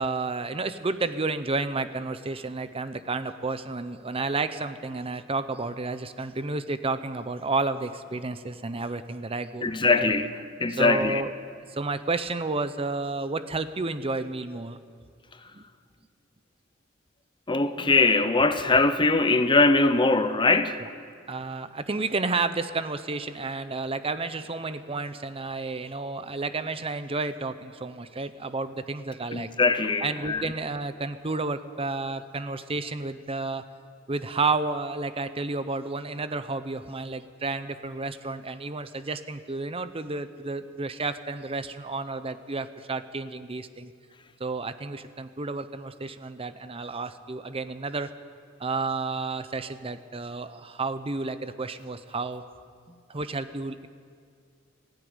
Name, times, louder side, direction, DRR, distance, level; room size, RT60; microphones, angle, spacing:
voice 1, 0.0-10.1 10.7-14.8 15.5-15.6 20.8-20.9 21.3-29.5 30.0-33.6 34.1-43.9 44.4-48.1 48.6-52.4 53.1-53.9, right 3 dB, 30° right, 0.8 m, -31 dB
voice 2, 9.6-10.3 10.6-11.2 17.5-20.8 29.3-30.4, left 3 dB, 25° left, 0.8 m, -22 dB
19.5 x 16.0 x 9.7 m
head